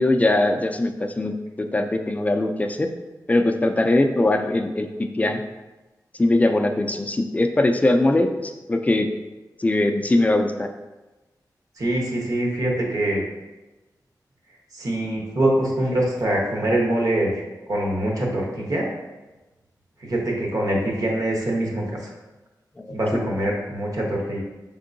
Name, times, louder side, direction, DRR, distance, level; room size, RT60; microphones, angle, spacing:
voice 1, 0.0-1.3 1.6-2.9 3.3-4.9 5.1-5.4 6.2-9.1 9.6-10.7 22.8-23.3, left 2 dB, 20° left, 5 dB, 0.3 m, -21 dB
voice 2, 11.8-13.2 14.7-17.4 17.7-18.9 20.0-22.1 22.9-24.4, right 1 dB, 55° right, -2 dB, 1.0 m, -24 dB
5.2 x 3.6 x 2.6 m, 1.1 s
wide cardioid pair, 135°, 7 cm